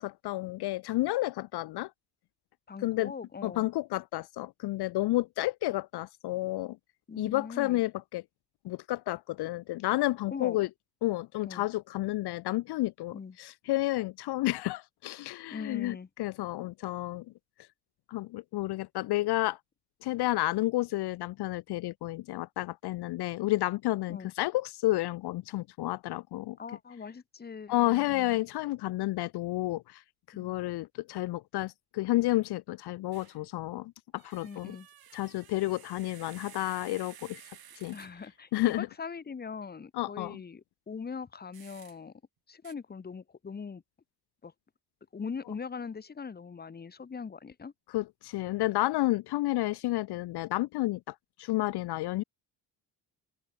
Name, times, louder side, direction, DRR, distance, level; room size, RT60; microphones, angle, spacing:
voice 1, 0.0-1.9 2.8-3.1 3.4-6.8 7.2-8.2 8.6-10.7 11.0-17.2 18.1-19.6 20.0-26.6 27.7-30.0 30.4-34.7 35.1-37.4 37.8-38.0 38.5-38.9 39.9-40.4 47.9-52.2, left 17 dB, 70° left, 0.6 m, -31 dB
voice 2, 2.7-3.7 7.1-7.8 10.3-10.6 11.4-11.7 13.1-13.4 15.5-16.1 24.1-24.3 26.6-28.4 30.3-30.6 34.4-34.9 37.9-42.1 42.5-43.8 44.4-44.5 45.1-47.7, left 5 dB, 25° left, 1.2 m, -41 dB
sound 1, 33.1-33.4 34.1-38.4 41.5-42.0 42.6-42.7, right 10 dB, 60° right, 7.3 m, -53 dB
open air
cardioid pair, 125°, 41 cm